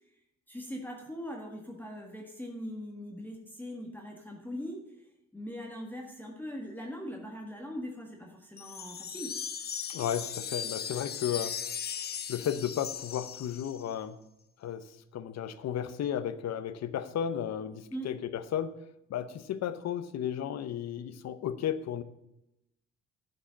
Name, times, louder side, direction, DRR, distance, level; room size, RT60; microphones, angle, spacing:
voice 1, 0.5-5.0 5.3-9.3 17.9-18.1, equal, 5° left, 1.6 m, -41 dB
sound 1, 8.6-13.9, left 7 dB, 35° left, 0.5 m, -38 dB
voice 2, 9.9-11.6 12.3-14.2 14.6-18.8 19.1-22.0, left 9 dB, 60° left, 0.8 m, -34 dB
10.0 x 5.3 x 7.0 m
cardioid pair, 90°, 30 cm